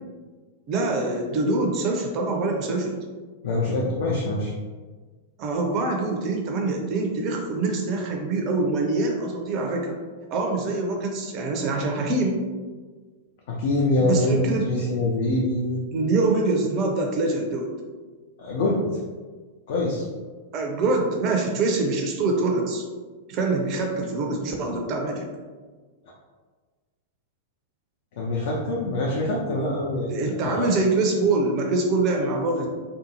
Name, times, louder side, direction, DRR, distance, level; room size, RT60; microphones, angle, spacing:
voice 1, 0.7-2.9 5.4-10.0 10.3-12.4 14.0-14.6 15.9-17.7 20.5-22.8 23.3-25.3 30.1-32.7, right 3 dB, 35° right, 1 dB, 0.4 m, -24 dB
voice 2, 3.4-4.5 13.5-15.8 18.4-18.9 19.7-20.1 28.2-30.1 30.4-30.7, left 2 dB, 50° left, -3 dB, 0.4 m, -24 dB
2.6 x 2.2 x 2.8 m, 1.4 s
figure-of-eight pair, 95°, 0 cm